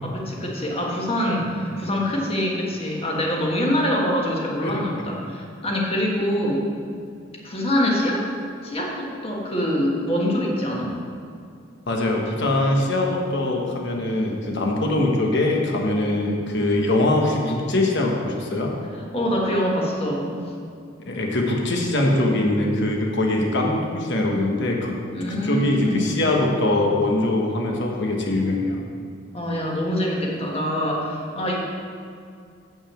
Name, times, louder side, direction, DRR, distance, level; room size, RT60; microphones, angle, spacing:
voice 1, 0.0-6.6 7.4-8.3 8.6-11.0 19.0-20.4 25.1-26.1 29.3-31.6, equal, 30° left, -2 dB, 1.5 m, -24 dB
voice 2, 11.9-18.7 21.1-24.9 25.3-28.8, left 1 dB, 60° left, 0 dB, 1.3 m, -22 dB
7.1 x 6.2 x 7.5 m, 2.4 s
head